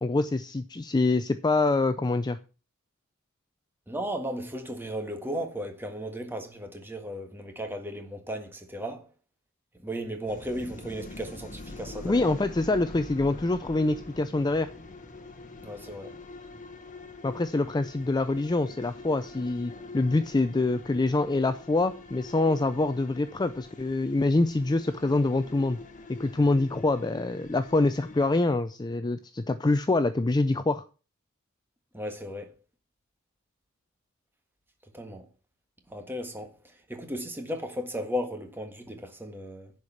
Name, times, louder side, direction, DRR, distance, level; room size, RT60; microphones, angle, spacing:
voice 1, 0.0-2.4 12.0-14.7 17.2-25.8 26.1-30.8, left 2 dB, 20° left, 0.4 m, -25 dB
voice 2, 3.9-9.1 9.8-12.2 15.6-16.1 31.9-32.5 34.9-35.3 35.9-36.5 36.9-39.7, equal, 10° right, 1.6 m, -35 dB
sound 1, 10.3-28.3, left 2 dB, 35° left, 1.2 m, -45 dB
10.5 x 4.9 x 7.1 m
head